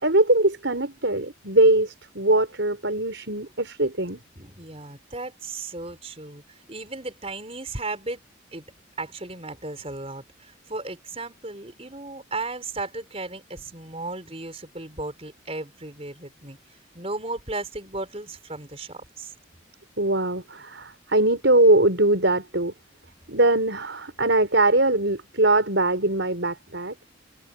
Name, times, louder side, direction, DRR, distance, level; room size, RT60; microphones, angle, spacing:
voice 1, 0.0-4.2 20.0-22.7 23.3-26.9, right 2 dB, 65° right, 5.2 m, -21 dB
voice 2, 4.3-8.2 8.5-8.6 9.0-19.3, right 2 dB, 30° right, 5.0 m, -35 dB
head